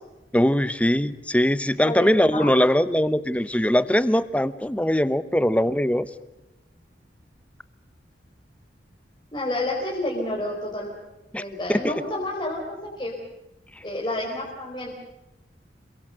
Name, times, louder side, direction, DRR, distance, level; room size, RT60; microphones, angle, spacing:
voice 1, 0.3-6.1 11.3-11.4 11.7-11.9, left 1 dB, 5° left, 14 dB, 0.9 m, -21 dB
voice 2, 1.8-2.5 9.3-10.9 11.3-12.6 13.0-13.1 13.8-15.1, left 1 dB, 25° left, -3 dB, 4.6 m, -29 dB
28.0 x 22.5 x 6.6 m, 0.99 s
head